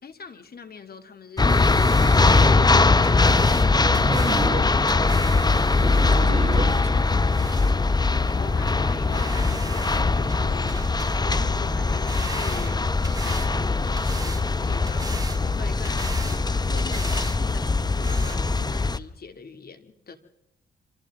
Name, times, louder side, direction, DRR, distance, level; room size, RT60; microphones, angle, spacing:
voice 1, 0.0-1.8 6.0-6.4 8.3-10.8 11.2-15.2 15.4-20.2, left 5 dB, 50° left, 7 dB, 2.4 m, -42 dB
sound 1, 1.4-19.0, left 3 dB, 20° left, 0.9 m, -21 dB
sound 2, 1.4-7.8 8.3-8.4 8.7-8.8 9.1-10.0 10.3-11.5 11.8-13.5 14.0-14.5 14.9-15.4 15.8-16.4 16.8-17.4 17.6-17.7 18.0-18.4, right 2 dB, 20° right, 1.6 m, -39 dB
voice 2, 4.0-4.7 5.8-7.0, right 4 dB, 35° right, 6 dB, 2.3 m, -31 dB
27.5 x 26.0 x 3.6 m, 0.89 s
supercardioid pair, 55°, 20 cm